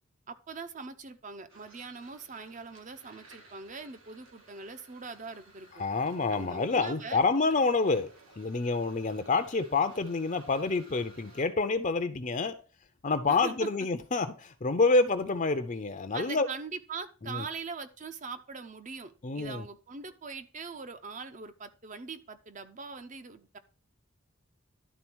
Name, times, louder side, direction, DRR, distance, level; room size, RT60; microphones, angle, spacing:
voice 1, 0.3-5.7 6.3-7.2 13.3-13.7 16.1-23.6, right 4 dB, 40° right, 0.7 m, -42 dB
sound 1, 1.5-11.5, right 2 dB, 80° right, 2.4 m, -57 dB
voice 2, 5.8-8.1 8.4-12.5 13.0-16.5 17.2-17.5 19.2-19.6, left 3 dB, 40° left, 0.6 m, -28 dB
11.5 x 3.9 x 6.1 m
head